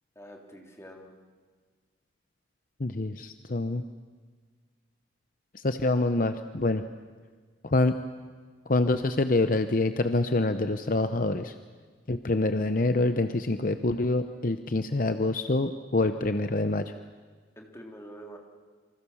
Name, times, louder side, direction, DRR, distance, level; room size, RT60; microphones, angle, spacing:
voice 1, 0.1-1.1 17.5-18.4, right 1 dB, 15° left, 1 dB, 3.1 m, -46 dB
voice 2, 2.8-3.8 5.5-6.8 7.6-8.0 8.7-11.5 12.1-16.9, left 2 dB, 50° left, 9 dB, 0.8 m, -26 dB
28.5 x 25.0 x 7.1 m, 1.5 s
head